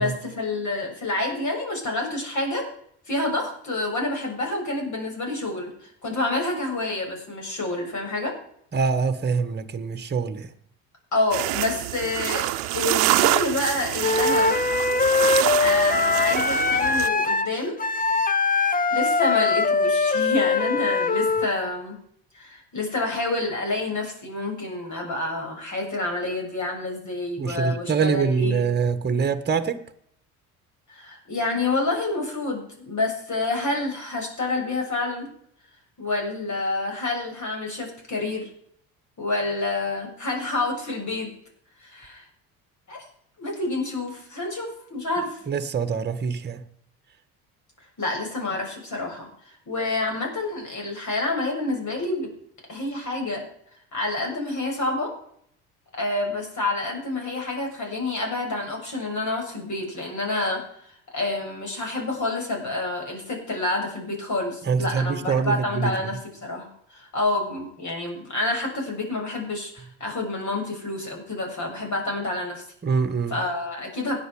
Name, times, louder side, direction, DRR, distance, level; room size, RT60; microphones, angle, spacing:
voice 1, 0.0-2.6 3.1-8.3 11.1-14.5 15.2-15.3 15.6-17.8 18.6-22.0 22.3-28.7 30.9-35.3 36.0-38.5 39.2-41.3 41.8-42.2 42.9-43.0 43.4-45.4 48.0-52.3 52.7-53.4 53.9-55.1 55.9-72.6 73.3-74.2, left 2 dB, 45° left, 1 dB, 7.1 m, -28 dB
voice 2, 8.7-10.5 27.4-29.8 45.5-46.6 64.7-65.9 72.8-73.4, right 5 dB, 25° right, 10 dB, 1.6 m, -24 dB
sound 1, 11.3-17.1, right 18 dB, 75° right, 0.9 m, -26 dB
Wind instrument woodwind instrument, 14.0-21.5, left 4 dB, 20° left, 1.1 m, -22 dB
16.5 x 10.5 x 5.0 m, 0.67 s
hypercardioid pair, 70°, 42 cm